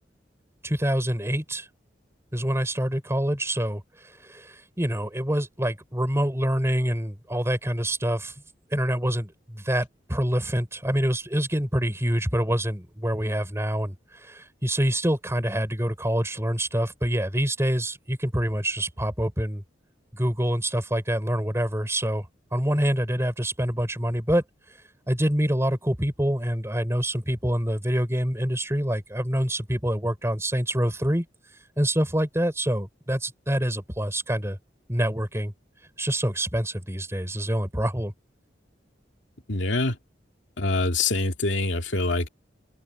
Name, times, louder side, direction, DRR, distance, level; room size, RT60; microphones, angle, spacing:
voice 1, 0.6-1.7 2.3-8.3 8.7-19.6 20.1-22.3 22.5-24.4 25.1-31.3 31.8-34.6 34.9-35.5 36.0-38.1, equal, 15° right, 4.1 m, -26 dB
voice 2, 39.5-40.0 40.6-42.3, left 2 dB, 85° left, 2.3 m, -25 dB
head